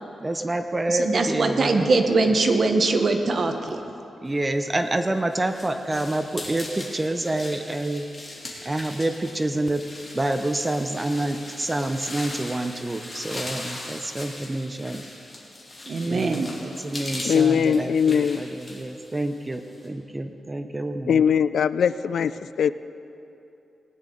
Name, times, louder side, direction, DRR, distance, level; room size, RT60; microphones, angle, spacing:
voice 1, 0.2-2.2 2.6-2.7 4.2-8.1 8.6-9.8 10.1-15.0 16.0-21.2, right 1 dB, 20° right, 7 dB, 0.5 m, -28 dB
voice 2, 1.1-3.8 15.9-16.5, right 3 dB, 50° right, 6 dB, 0.9 m, -22 dB
sound 1, 4.7-19.9, left 1 dB, 25° left, 2.4 m, -39 dB
voice 3, 17.2-18.4 21.1-22.3 22.6-22.7, left 7 dB, 80° left, 15 dB, 0.3 m, -20 dB
19.0 x 10.0 x 3.8 m, 2.8 s
wide cardioid pair, 115°, 0 cm